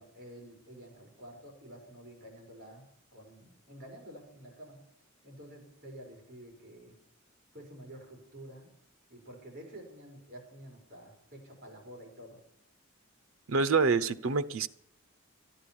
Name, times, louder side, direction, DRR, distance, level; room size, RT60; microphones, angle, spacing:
voice 1, 0.0-4.8 5.2-7.0 7.5-8.7 9.1-12.4, right 1 dB, 45° right, 1 dB, 5.5 m, -50 dB
voice 2, 13.5-14.7, right 4 dB, 85° right, 13 dB, 0.7 m, -26 dB
14.5 x 10.5 x 7.2 m, 0.70 s
head